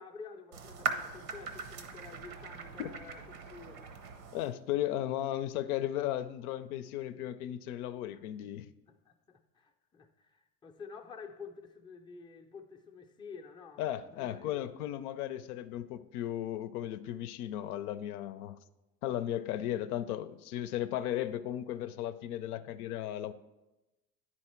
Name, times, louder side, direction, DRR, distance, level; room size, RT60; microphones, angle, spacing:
voice 1, 0.0-4.0 8.4-8.5 8.9-13.8 14.1-14.7, left 5 dB, 10° left, 0.5 m, -50 dB
sound 1, 0.5-4.5, right 4 dB, 80° right, 0.9 m, -40 dB
voice 2, 4.3-8.7 13.8-18.6 19.0-23.3, left 12 dB, 75° left, 0.5 m, -35 dB
9.8 x 4.3 x 4.4 m
hypercardioid pair, 95°, 45 cm